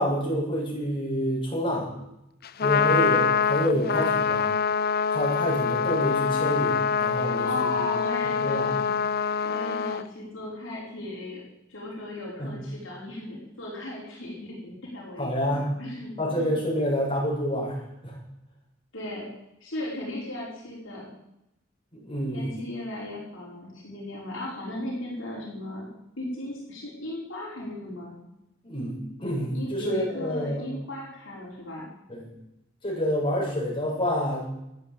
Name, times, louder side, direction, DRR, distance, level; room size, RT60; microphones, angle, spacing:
voice 1, 0.0-1.9 2.6-4.5 5.1-7.9 8.4-8.7 12.4-12.5 15.2-15.7 16.2-18.2 21.9-22.5 28.6-30.6 32.1-32.3 32.8-34.4, equal, 25° left, -6 dB, 7.5 m, -28 dB
Trumpet, 2.4-10.0, left 6 dB, 50° left, 0.6 m, -25 dB
voice 2, 7.3-8.9 9.4-11.4 11.7-16.5 18.9-19.3 19.6-21.1 22.3-25.9 26.2-28.1 29.5-31.9, left 1 dB, 70° left, -5 dB, 5.5 m, -36 dB
13.5 x 9.9 x 8.8 m, 0.86 s
head